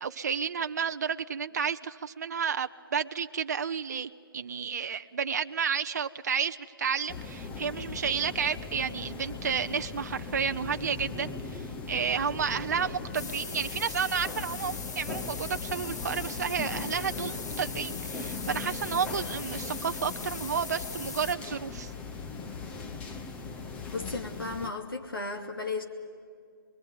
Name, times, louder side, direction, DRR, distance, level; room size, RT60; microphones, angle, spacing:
voice 1, 0.0-21.9, right 6 dB, 45° right, 9 dB, 0.7 m, -31 dB
sound 1, 7.1-24.7, left 4 dB, 10° left, 0.9 m, -39 dB
sound 2, 13.1-21.4, left 4 dB, 45° left, 2.3 m, -41 dB
voice 2, 23.9-25.8, left 3 dB, 70° left, 2 dB, 2.8 m, -35 dB
27.0 x 22.0 x 9.4 m, 2.3 s
figure-of-eight pair, 150°, 12 cm